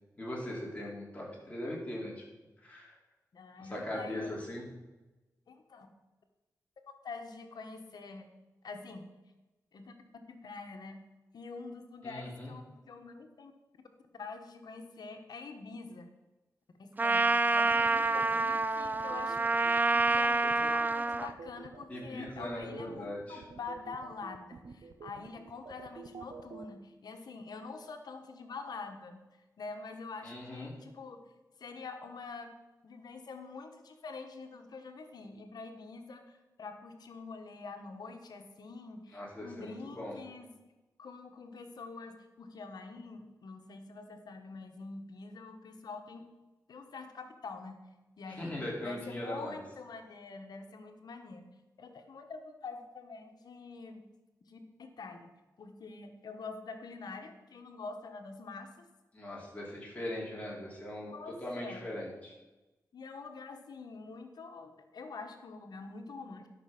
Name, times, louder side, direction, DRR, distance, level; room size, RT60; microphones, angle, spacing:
voice 1, 0.2-2.2 2.6-2.9 3.6-4.7 12.0-12.5 21.9-23.4 30.2-30.7 39.1-40.2 48.4-49.6 59.1-62.3, left 1 dB, 20° left, -4 dB, 4.3 m, -40 dB
voice 2, 3.3-4.3 5.5-5.9 7.0-8.3 8.6-9.1 9.7-9.9 10.3-11.0 11.3-13.5 14.2-16.1 16.8-19.5 20.1-29.2 29.6-31.2 31.6-32.5 32.8-40.5 41.0-46.3 46.7-47.8 48.2-51.5 51.8-54.0 54.5-55.3 55.6-58.9 61.1-62.0 62.9-66.5, left 4 dB, 80° left, 6 dB, 1.4 m, -45 dB
Trumpet, 17.0-21.3, right 3 dB, 25° right, 0.5 m, -28 dB
sound 1, 17.7-26.7, right 5 dB, 75° right, 0.9 m, -48 dB
12.0 x 6.1 x 6.0 m, 1.1 s
cardioid pair, 70°, 7 cm